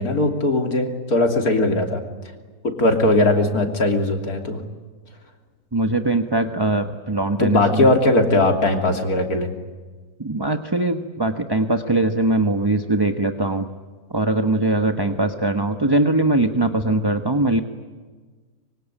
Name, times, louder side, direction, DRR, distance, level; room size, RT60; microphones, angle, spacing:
voice 1, 0.0-2.0 2.6-4.6 7.4-9.5, left 2 dB, 85° left, 4 dB, 3.5 m, -19 dB
voice 2, 5.7-7.9 10.2-13.7 14.1-17.6, right 2 dB, 20° right, 7 dB, 1.1 m, -21 dB
25.5 x 23.5 x 10.0 m, 1.4 s
omnidirectional pair, 1.5 m